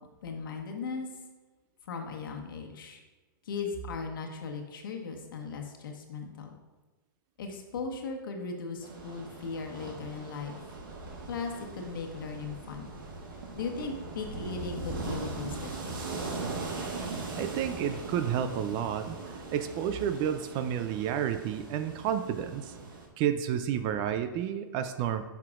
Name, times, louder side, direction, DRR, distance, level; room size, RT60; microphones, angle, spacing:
voice 1, 0.2-1.1 1.9-3.0 3.4-6.5 7.4-10.6 11.3-12.9 13.6-16.1, left 4 dB, 75° left, 3 dB, 1.3 m, -37 dB
sound 1, 8.8-23.1, right 3 dB, 75° right, 1.4 m, -40 dB
voice 2, 17.3-22.8 23.2-25.2, right 9 dB, 40° right, 10 dB, 0.5 m, -31 dB
9.8 x 5.9 x 2.5 m, 1.2 s
hypercardioid pair, 120°, 11 cm